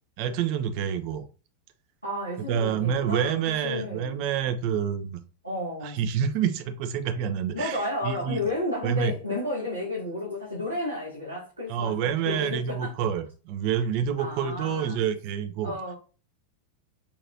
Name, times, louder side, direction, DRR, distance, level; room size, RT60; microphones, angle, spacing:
voice 1, 0.2-1.2 2.5-5.2 5.8-8.4 8.8-9.1 11.7-15.8, right 8 dB, 45° right, 0.6 m, -28 dB
voice 2, 2.0-4.2 5.4-6.1 7.5-12.9 14.2-15.1 15.6-16.0, left 1 dB, 90° left, 1.6 m, -32 dB
5.7 x 2.9 x 2.8 m
figure-of-eight pair, 90°, 0 cm